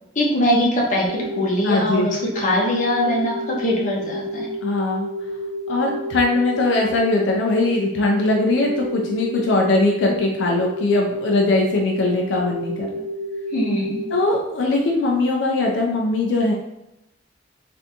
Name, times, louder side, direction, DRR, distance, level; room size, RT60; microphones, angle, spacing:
voice 1, 0.2-4.5 13.5-14.0, left 1 dB, 40° left, -3 dB, 0.7 m, -22 dB
sound 1, 1.1-14.5, equal, 70° right, 0.5 m, -30 dB
voice 2, 1.6-2.1 4.6-5.1 5.7-12.9 14.1-16.5, left 2 dB, 75° left, 0 dB, 0.4 m, -20 dB
3.3 x 2.6 x 2.7 m, 0.89 s
head